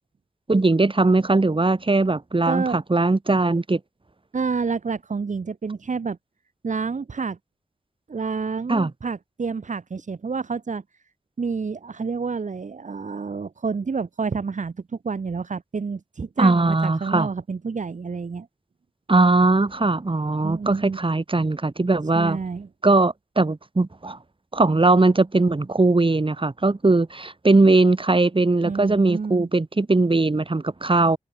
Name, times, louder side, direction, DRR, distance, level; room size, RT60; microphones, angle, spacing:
voice 1, 0.5-3.8 8.7-8.9 16.4-17.3 19.1-22.4 22.8-24.2 24.5-31.2, right 3 dB, 40° right, 4.7 m, -20 dB
voice 2, 2.5-2.8 4.3-6.2 6.6-7.4 8.1-10.8 11.4-14.8 15.0-18.5 20.4-21.0 22.1-22.7 28.6-29.5, right 5 dB, 65° right, 2.3 m, -29 dB
cardioid pair, 40°, 14 cm